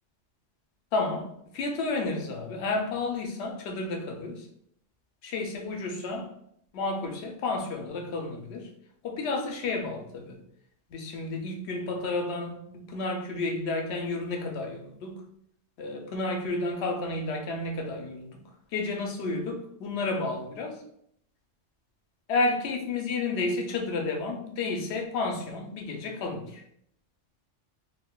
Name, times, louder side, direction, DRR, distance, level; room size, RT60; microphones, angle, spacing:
voice 1, 0.9-4.5 5.2-6.3 6.7-8.7 9.0-10.4 10.9-15.2 15.8-18.4 18.7-20.8 22.3-26.6, left 3 dB, 65° left, 0.8 m, -31 dB
3.6 x 2.6 x 2.3 m
omnidirectional pair, 1.3 m